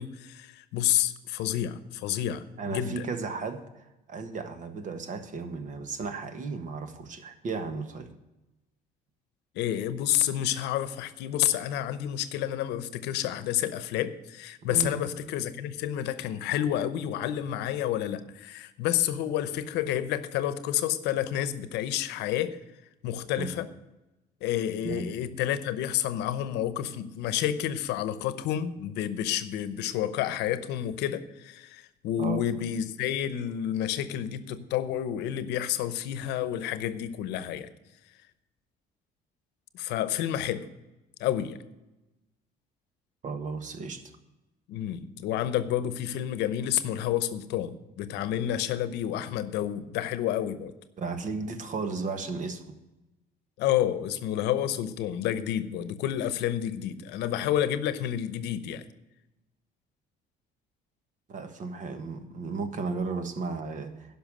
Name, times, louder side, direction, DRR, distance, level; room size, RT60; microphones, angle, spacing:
voice 1, 0.0-3.1 9.5-22.6 23.0-23.7 24.4-37.7 39.7-40.7 41.2-41.6 44.7-50.7 53.6-58.8, left 11 dB, 85° left, 13 dB, 0.8 m, -29 dB
voice 2, 2.6-8.1 14.7-15.0 23.4-23.5 24.8-25.1 32.2-32.4 43.2-44.0 51.0-52.8 61.3-64.2, right 4 dB, 50° right, 8 dB, 1.4 m, -34 dB
11.0 x 5.8 x 8.8 m, 0.99 s
cardioid pair, 110°, 17 cm